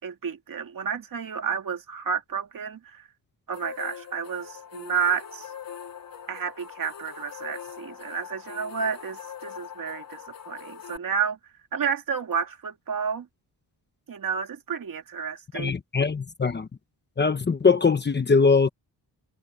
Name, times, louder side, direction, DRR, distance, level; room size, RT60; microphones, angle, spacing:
voice 1, 0.0-3.0 3.5-5.5 6.3-10.2 10.5-11.4 11.7-13.3 14.1-15.7, right 6 dB, 50° right, 2.7 m, -30 dB
sound 1, 3.5-11.0, left 8 dB, 55° left, 4.3 m, -42 dB
voice 2, 15.5-16.7 17.2-18.7, left 4 dB, 25° left, 1.0 m, -21 dB
wide cardioid pair, 170°, 41 cm